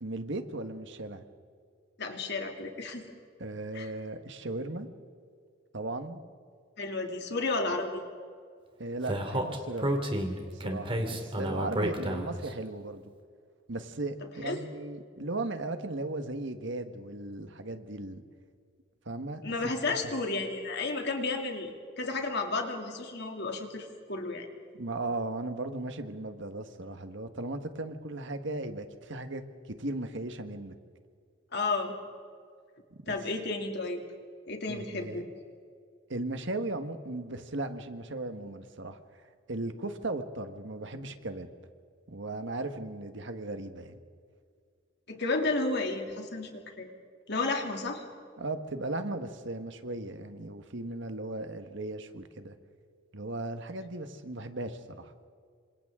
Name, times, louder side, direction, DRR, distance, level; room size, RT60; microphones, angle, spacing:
voice 1, 0.0-1.2 3.4-4.9 5.7-6.2 8.8-9.9 10.6-13.0 13.7-18.2 19.0-20.1 24.8-30.8 33.1-33.2 34.7-35.2 36.1-39.0 39.5-41.5 42.1-44.0 48.4-52.5 53.1-55.1, right 2 dB, 65° right, 8 dB, 1.5 m, -37 dB
voice 2, 2.0-3.1 3.7-3.9 6.8-8.0 14.4-14.6 19.4-21.7 22.0-24.5 31.5-31.9 33.1-34.0 34.5-35.3 45.1-46.5 46.8-46.9 47.3-48.0, left 3 dB, 60° left, 3 dB, 2.7 m, -32 dB
Speech, 9.1-12.5, right 1 dB, 30° right, 2.5 m, -31 dB
28.0 x 26.0 x 3.8 m, 2.1 s
head